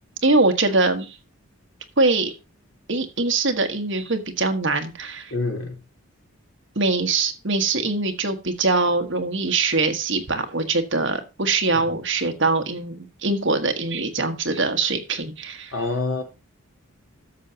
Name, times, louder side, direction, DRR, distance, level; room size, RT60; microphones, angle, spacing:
voice 1, 0.2-1.2 2.0-2.3 2.9-5.3 6.7-15.7, right 3 dB, 55° right, 1.5 m, -23 dB
voice 2, 5.3-5.8 11.7-12.0 15.7-16.2, left 3 dB, 65° left, 3.5 m, -27 dB
13.0 x 6.9 x 2.8 m
head